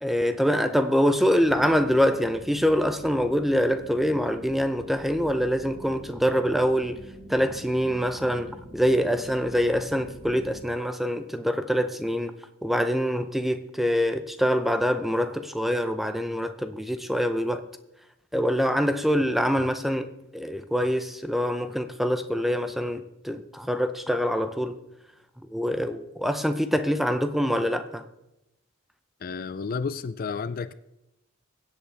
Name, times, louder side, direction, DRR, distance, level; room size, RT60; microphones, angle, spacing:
voice 1, 0.0-7.0 7.3-12.3 12.6-17.6 18.3-24.8 25.5-28.0, equal, ahead, 9 dB, 0.6 m, -25 dB
sound 1, 1.4-10.6, right 1 dB, 45° right, 1.3 m, -46 dB
voice 2, 29.2-30.7, left 5 dB, 45° left, 14 dB, 0.4 m, -31 dB
24.0 x 8.1 x 3.4 m, 0.90 s
head